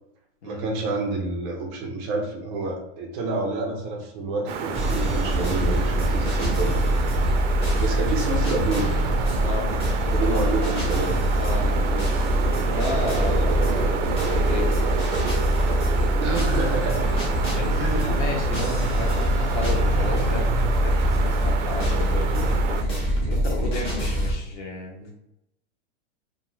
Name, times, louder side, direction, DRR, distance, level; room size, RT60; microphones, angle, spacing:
voice 1, 0.4-6.9 7.8-8.9 10.1-11.2 13.4-13.5 16.2-17.2 17.8-18.1, right 3 dB, 25° right, 1 dB, 0.3 m, -28 dB
sound 1, 4.5-22.8, right 7 dB, 90° right, 0.5 m, -30 dB
sound 2, 4.7-24.3, equal, 15° left, 0.7 m, -23 dB
voice 2, 9.4-10.3 11.4-12.0 12.7-14.8 17.5-22.8 23.2-25.2, left 2 dB, 75° left, 1 dB, 1.0 m, -33 dB
2.5 x 2.3 x 3.0 m, 0.85 s
hypercardioid pair, 145°, 36 cm